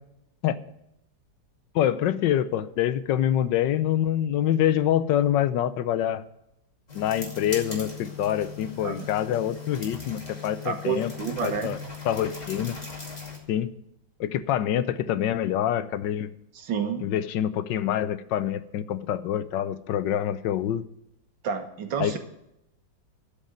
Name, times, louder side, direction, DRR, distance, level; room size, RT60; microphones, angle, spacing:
voice 1, 1.7-6.2 6.9-11.1 11.4-11.8 12.1-12.8 13.5-13.7 14.2-16.3 17.0-20.8 22.0-22.2, left 11 dB, 80° left, 14 dB, 1.3 m, -26 dB
sound 1, 6.9-13.4, left 4 dB, 20° left, 2.5 m, -39 dB
voice 2, 10.7-11.8 16.5-17.1 21.4-22.2, right 6 dB, 85° right, 6 dB, 2.1 m, -29 dB
13.0 x 5.3 x 8.5 m, 0.81 s
omnidirectional pair, 2.0 m